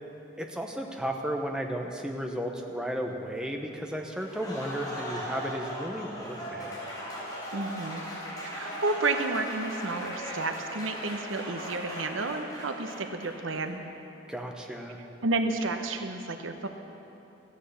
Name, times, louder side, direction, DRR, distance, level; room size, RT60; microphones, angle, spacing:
voice 1, 0.4-6.8 14.3-15.0, equal, 5° right, 2 dB, 0.9 m, -34 dB
Applause, 4.2-13.5, equal, 20° left, 3.8 m, -38 dB
voice 2, 7.5-8.0 8.4-13.8 15.2-16.7, right 3 dB, 75° right, 6 dB, 0.9 m, -31 dB
15.0 x 9.9 x 7.0 m, 2.9 s
head